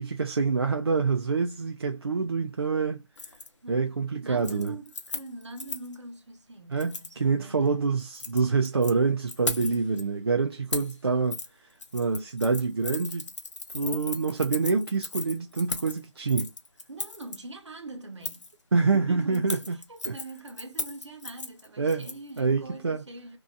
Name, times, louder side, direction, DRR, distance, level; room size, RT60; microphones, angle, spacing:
voice 1, 0.0-3.0 3.7-4.7 6.7-11.4 11.9-13.3 13.7-16.5 18.7-19.8 20.1-20.2 21.8-22.1 22.4-23.0, right 4 dB, 55° right, 0.4 m, -26 dB
Keys jangling, 3.2-3.5 3.8-4.1 4.4-6.0 6.8-7.1 8.0-8.9 9.3-10.0 10.7-11.0 11.3-11.5 11.8-17.4 18.2-18.5 19.3-22.4 22.7-22.8, left 3 dB, 80° left, 0.8 m, -37 dB
voice 2, 3.6-7.9 16.9-18.5 18.9-23.4, right 3 dB, 75° right, 1.0 m, -43 dB
2.7 x 2.3 x 2.4 m
figure-of-eight pair, 175°, 15 cm